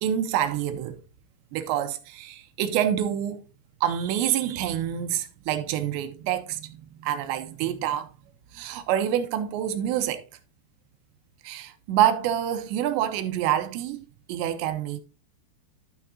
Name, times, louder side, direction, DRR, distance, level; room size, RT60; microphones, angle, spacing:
voice 1, 0.0-1.0 1.5-3.4 3.8-8.1 8.5-10.2 11.4-15.0, right 10 dB, 80° right, 2.7 m, -27 dB
12.5 x 6.1 x 2.7 m
omnidirectional pair, 5.3 m